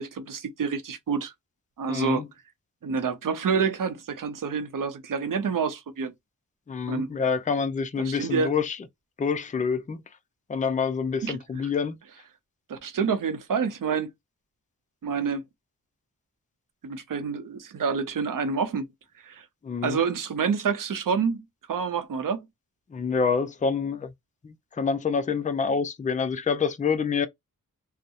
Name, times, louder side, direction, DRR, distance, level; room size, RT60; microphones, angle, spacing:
voice 1, 0.0-1.3 1.8-2.2 2.8-6.1 6.9-7.1 8.0-8.5 11.2-11.4 12.7-14.1 15.0-15.4 16.8-18.9 19.2-19.5 19.8-22.5, right 6 dB, 70° right, 0.6 m, -28 dB
voice 2, 1.9-2.3 6.7-8.8 9.2-10.0 10.5-12.0 19.6-20.0 22.9-24.1 24.4-27.3, left 5 dB, 25° left, 0.3 m, -27 dB
2.7 x 2.0 x 2.3 m
wide cardioid pair, 100°, 34 cm